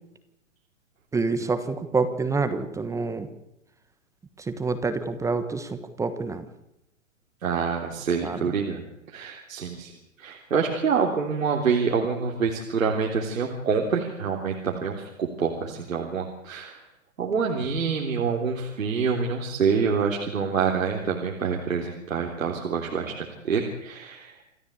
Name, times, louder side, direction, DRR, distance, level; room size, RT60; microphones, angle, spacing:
voice 1, 1.1-3.3 4.4-6.4 8.2-8.4, right 4 dB, 10° right, 10 dB, 1.3 m, -27 dB
voice 2, 7.4-8.8 9.1-9.9 10.2-16.8 17.2-24.4, right 5 dB, 80° right, 0 dB, 3.6 m, -26 dB
28.5 x 13.0 x 8.3 m, 0.86 s
hypercardioid pair, 135°, 39 cm